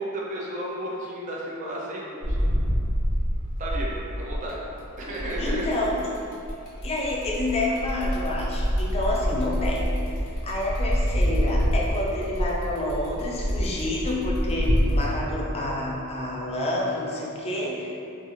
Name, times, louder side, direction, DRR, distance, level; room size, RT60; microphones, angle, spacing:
voice 1, 0.0-2.5 3.6-4.6 5.0-5.7, right 1 dB, 35° right, -4 dB, 0.4 m, -33 dB
sound 1, 2.2-4.7 5.1-15.0, equal, 70° left, 0.7 m, -26 dB
voice 2, 5.4-6.1 6.8-9.9 10.4-18.0, left 1 dB, 30° left, -3 dB, 0.4 m, -28 dB
2.5 x 2.5 x 2.7 m, 2.7 s
head